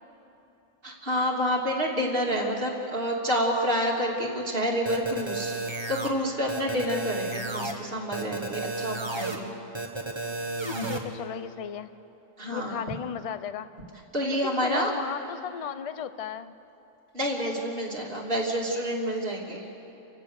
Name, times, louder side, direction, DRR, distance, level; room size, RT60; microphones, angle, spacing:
voice 1, 0.8-5.5 5.9-9.5 12.4-12.8 14.1-14.9 17.1-19.7, equal, 45° right, -2 dB, 3.2 m, -28 dB
sound 1, 4.9-6.1 6.5-7.7 8.1-9.4 9.7-11.0, right 2 dB, 20° right, 1.6 m, -32 dB
voice 2, 10.9-11.9 12.5-13.7 14.2-16.5, left 8 dB, 40° left, 12 dB, 0.5 m, -35 dB
29.5 x 16.0 x 6.8 m, 3.0 s
omnidirectional pair, 1.3 m